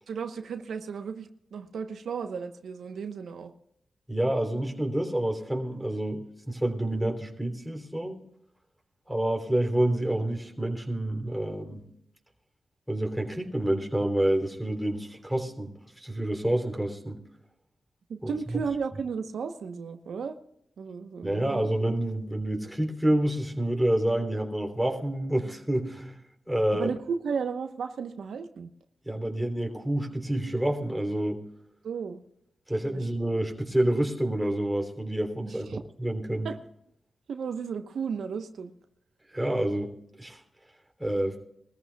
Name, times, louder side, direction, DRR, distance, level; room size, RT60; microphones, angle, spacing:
voice 1, 0.1-3.5 18.1-20.4 20.8-21.7 26.7-28.7 31.8-32.2 32.9-33.1 35.4-35.8 36.4-36.6 37.3-38.7, right 6 dB, 80° right, 7 dB, 1.0 m, -34 dB
voice 2, 4.1-8.2 9.1-11.9 12.9-17.2 18.2-18.6 21.2-26.2 26.5-26.9 29.0-31.4 32.7-35.7 36.0-36.5 39.3-40.4 41.0-41.4, right 1 dB, 5° right, 1 dB, 3.3 m, -28 dB
22.0 x 14.0 x 2.3 m, 0.75 s
cardioid pair, 70°, 0 cm